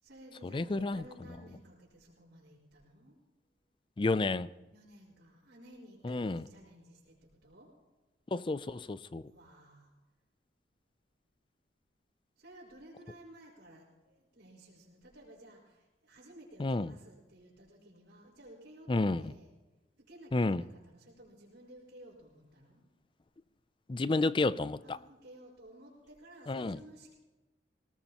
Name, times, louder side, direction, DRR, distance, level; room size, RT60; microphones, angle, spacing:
voice 1, 0.0-3.1 4.7-7.1 7.4-7.7 9.3-9.9 12.4-18.9 19.2-19.5 20.0-22.8 24.8-27.1, right 1 dB, 65° right, 4.8 m, -55 dB
voice 2, 0.5-1.0 4.0-4.5 6.0-6.4 8.3-9.2 16.6-16.9 18.9-19.2 20.3-20.6 23.9-25.0 26.5-26.8, left 2 dB, 25° left, 0.4 m, -30 dB
20.5 x 18.5 x 3.0 m
head